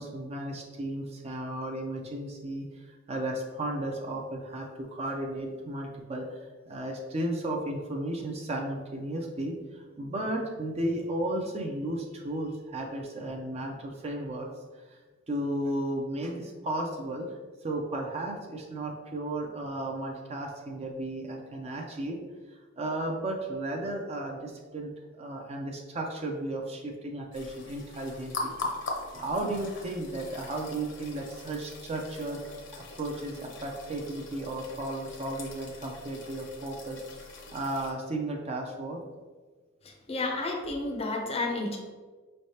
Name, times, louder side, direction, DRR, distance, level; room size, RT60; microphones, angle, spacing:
voice 1, 0.0-14.5 14.9-15.0 15.3-17.4 17.6-22.2 22.8-24.9 25.2-28.5 29.1-32.4 32.7-37.0 37.5-39.0, right 1 dB, 30° right, 1 dB, 0.4 m, -34 dB
sound 1, 27.3-37.9, left 3 dB, 65° left, 0.8 m, -41 dB
voice 2, 40.1-41.8, left 2 dB, 30° left, 1 dB, 0.6 m, -31 dB
5.4 x 3.2 x 2.8 m, 1.4 s
head